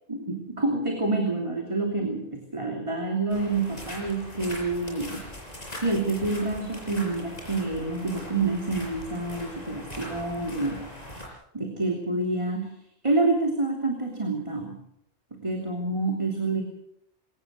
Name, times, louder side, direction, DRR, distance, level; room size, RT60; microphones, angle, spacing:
voice 1, 0.1-5.3 5.7-10.9 11.5-12.7 13.0-14.8 15.3-16.6, right 2 dB, 25° right, 2 dB, 3.1 m, -28 dB
sound 1, 3.3-11.3, left 1 dB, 35° left, 6.1 m, -41 dB
22.5 x 18.5 x 6.6 m, 0.75 s
omnidirectional pair, 1.1 m